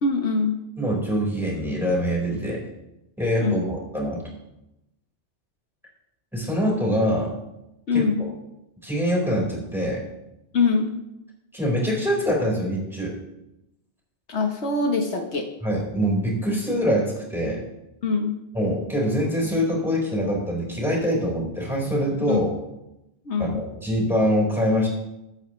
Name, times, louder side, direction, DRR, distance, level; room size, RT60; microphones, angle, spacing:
voice 1, 0.0-0.6 3.4-3.7 7.9-8.3 10.5-10.9 14.3-15.5 18.0-18.4 22.3-22.4 23.2-23.6, left 4 dB, 70° left, 3 dB, 1.5 m, -23 dB
voice 2, 0.8-2.6 3.2-4.2 6.3-7.3 7.9-8.3 8.8-10.0 11.5-13.1 15.6-17.6 18.5-22.5 23.4-24.9, equal, ahead, -3 dB, 4.7 m, -24 dB
22.0 x 8.7 x 3.2 m, 0.91 s
omnidirectional pair, 1.2 m